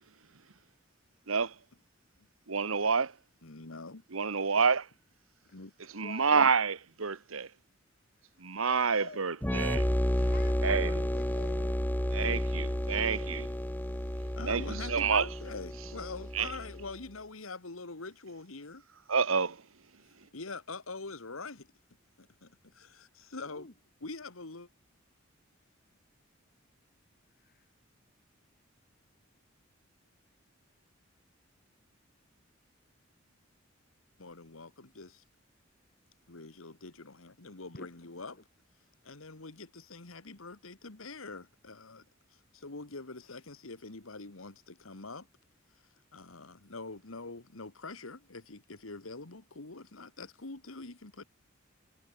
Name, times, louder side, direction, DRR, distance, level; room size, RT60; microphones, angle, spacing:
voice 1, 2.5-3.1 4.1-4.9 5.9-7.5 8.4-9.9 10.6-11.0 12.1-13.5 14.5-15.3 16.3-16.5 19.1-19.6, right 5 dB, 90° right, 1.3 m, -28 dB
voice 2, 3.4-4.0 5.5-5.7 14.4-18.8 20.3-21.7 22.2-23.7 24.0-24.7 34.2-35.2 36.3-38.4 39.0-42.1 42.3-45.3 46.1-51.2, left 3 dB, 90° left, 1.9 m, -44 dB
voice 3, 6.0-6.4 8.2-9.4 10.2-11.8 23.4-23.7 27.3-27.7 37.7-37.9 38.2-38.4, left 3 dB, 50° left, 2.2 m, -49 dB
sound 1, 9.4-16.9, equal, 10° left, 1.2 m, -31 dB
head